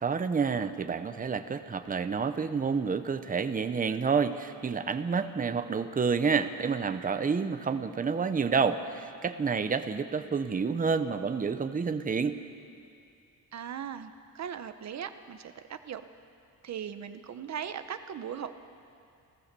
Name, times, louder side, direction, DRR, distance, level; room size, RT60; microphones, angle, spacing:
voice 1, 0.0-12.4, right 5 dB, 25° right, 10 dB, 0.7 m, -29 dB
voice 2, 13.5-16.0 16.6-18.6, right 8 dB, 45° right, 10 dB, 0.9 m, -39 dB
29.5 x 14.5 x 6.8 m, 2.5 s
wide cardioid pair, 165°, 37 cm